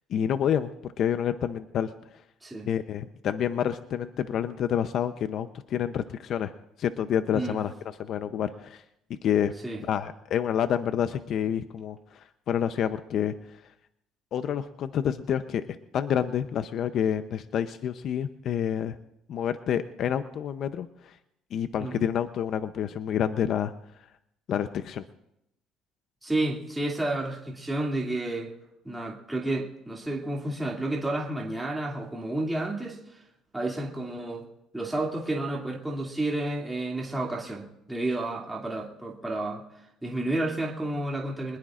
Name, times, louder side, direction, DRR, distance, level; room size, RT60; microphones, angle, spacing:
voice 1, 0.1-1.9 2.6-6.5 6.8-7.7 8.0-8.8 9.2-9.5 9.9-13.3 14.3-19.0 19.3-21.2 21.5-23.7 24.5-25.0, left 9 dB, 55° left, 10 dB, 0.7 m, -28 dB
voice 2, 26.2-28.5 28.8-33.2 33.5-34.4 34.7-39.6 40.0-41.6, right 2 dB, 10° right, -3 dB, 2.6 m, -31 dB
24.0 x 20.5 x 2.5 m, 0.83 s
cardioid pair, 115°, 0 cm